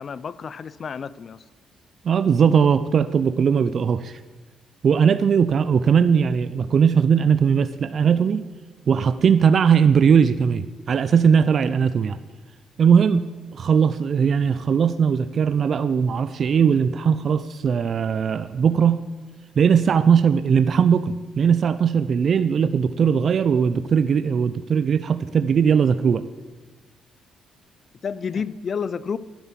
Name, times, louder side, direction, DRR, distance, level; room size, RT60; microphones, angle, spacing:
voice 1, 0.0-1.4 28.0-29.2, left 6 dB, 45° left, 0.5 m, -30 dB
voice 2, 2.0-4.2 4.8-8.4 8.9-12.2 12.8-19.0 19.6-26.2, right 7 dB, 55° right, 0.5 m, -19 dB
11.0 x 10.5 x 7.4 m
cardioid pair, 90°, 0 cm